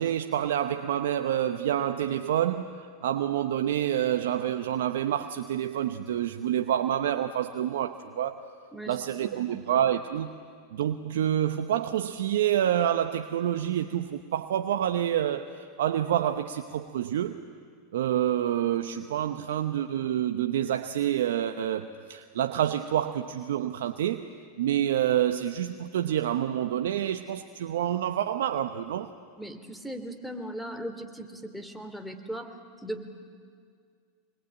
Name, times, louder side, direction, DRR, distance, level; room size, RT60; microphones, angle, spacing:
voice 1, 0.0-8.4 8.9-10.3 10.7-17.4 17.9-24.2 24.6-29.1, right 10 dB, 75° right, 7 dB, 0.9 m, -28 dB
voice 2, 8.7-9.6 29.4-33.1, right 1 dB, ahead, 7 dB, 2.9 m, -39 dB
25.5 x 21.5 x 9.0 m, 2.1 s
hypercardioid pair, 95°, 0 cm